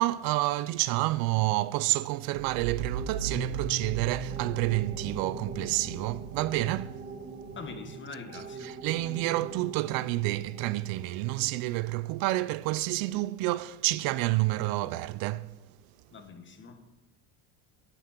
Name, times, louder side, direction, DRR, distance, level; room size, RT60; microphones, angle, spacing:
voice 1, 0.0-7.0 8.6-15.5, right 18 dB, 65° right, 0.5 m, -29 dB
sound 1, 2.3-11.7, right 5 dB, 35° right, 2.3 m, -38 dB
voice 2, 7.5-8.7 16.1-17.0, left 4 dB, 30° left, 1.7 m, -44 dB
11.0 x 9.5 x 5.9 m
supercardioid pair, 105°, 38 cm